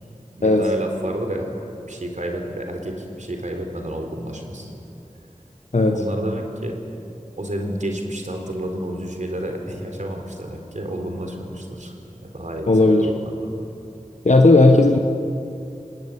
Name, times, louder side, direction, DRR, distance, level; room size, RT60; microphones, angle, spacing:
voice 1, 0.4-1.5 1.9-4.7 5.9-6.7 7.4-11.9 12.2-13.5, right 1 dB, 70° right, 3 dB, 3.9 m, -30 dB
voice 2, 12.7-13.1 14.2-15.0, left 2 dB, 65° left, 4 dB, 1.3 m, -14 dB
27.5 x 20.0 x 8.7 m, 2.8 s
wide cardioid pair, 55°, 13 cm